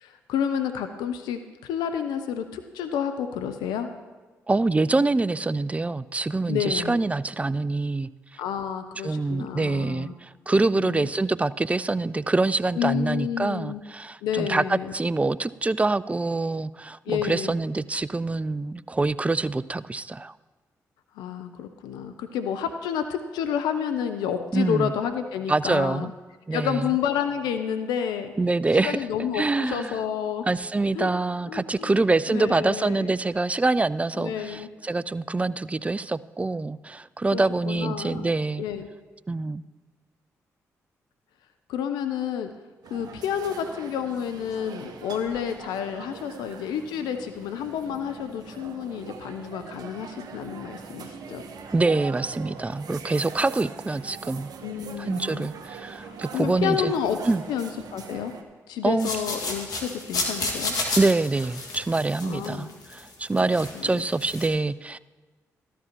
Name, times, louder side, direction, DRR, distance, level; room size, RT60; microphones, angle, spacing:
voice 1, 0.0-3.9 6.5-7.0 8.4-10.1 10.7-11.1 12.8-13.8 14.2-14.9 17.1-17.5 21.2-26.1 26.5-28.3 28.7-30.5 30.9-31.1 31.5-31.9 32.3-33.1 34.1-34.7 37.3-38.3 38.6-38.9 41.7-42.5 42.9-51.5 54.6-55.5 56.0-57.2 57.5-58.3 58.7-60.7 62.2-62.7 63.4-64.1, left 8 dB, 80° left, 8 dB, 0.5 m, -30 dB
voice 2, 4.5-8.1 9.0-20.3 24.5-24.9 25.5-26.1 26.5-26.9 28.4-29.0 29.3-29.9 30.5-38.7 39.3-39.6 51.7-54.5 55.0-56.9 57.3-57.4 58.8-59.1 61.0-65.0, right 3 dB, 20° right, 17 dB, 0.4 m, -25 dB
sound 1, 42.8-58.4, right 5 dB, 65° right, 1.1 m, -42 dB
sound 2, 59.0-63.1 63.4-64.5, left 3 dB, 65° left, 1.9 m, -31 dB
13.5 x 12.0 x 2.9 m, 1.3 s
hypercardioid pair, 45°, 7 cm